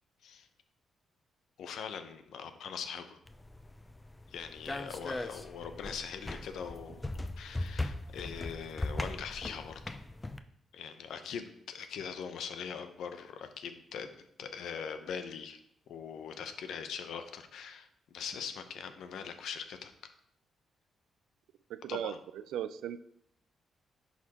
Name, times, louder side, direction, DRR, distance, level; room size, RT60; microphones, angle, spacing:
voice 1, 1.6-3.2 4.3-7.0 7.4-10.0 10.7-14.1 14.4-15.6 15.9-19.9 21.9-22.2, left 7 dB, 80° left, 8 dB, 0.7 m, -42 dB
sound 1, 3.3-10.4, left 2 dB, 20° left, 0.5 m, -39 dB
voice 2, 21.7-22.1 22.5-23.0, right 11 dB, 90° right, 13 dB, 0.3 m, -36 dB
11.0 x 4.1 x 2.9 m, 0.71 s
cardioid pair, 75°, 0 cm